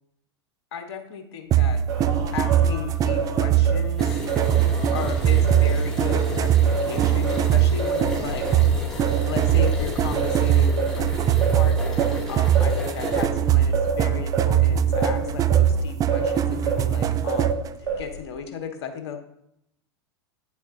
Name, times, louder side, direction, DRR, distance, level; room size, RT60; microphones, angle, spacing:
voice 1, 0.7-1.8 2.3-4.2 4.9-8.5 9.3-19.3, left 7 dB, 65° left, 6 dB, 1.2 m, -35 dB
sound 1, 1.5-17.7, right 10 dB, 25° right, 0.3 m, -22 dB
Singing, 1.9-6.2 6.6-16.9 17.3-18.3, right 4 dB, 65° right, 2.1 m, -30 dB
sound 2, 4.0-13.2, left 2 dB, 5° left, 2.3 m, -35 dB
9.3 x 7.2 x 2.6 m, 0.76 s
hypercardioid pair, 100°, 15 cm